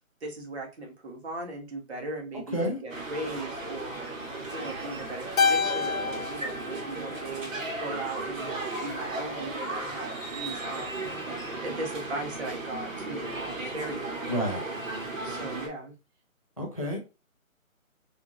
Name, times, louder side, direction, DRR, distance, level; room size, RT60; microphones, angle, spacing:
voice 1, 0.2-4.2 4.5-11.1 11.6-14.3 15.2-15.9, right 2 dB, 50° right, 1 dB, 1.2 m, -38 dB
sound 1, 2.9-15.7, right 2 dB, 70° right, 1.4 m, -35 dB
Keyboard (musical), 5.4-7.9, left 5 dB, 90° left, 0.7 m, -29 dB
voice 2, 14.3-14.6 16.6-17.0, equal, 25° left, 0 dB, 0.4 m, -29 dB
3.5 x 2.5 x 2.8 m, 0.30 s
hypercardioid pair, 165°, 41 cm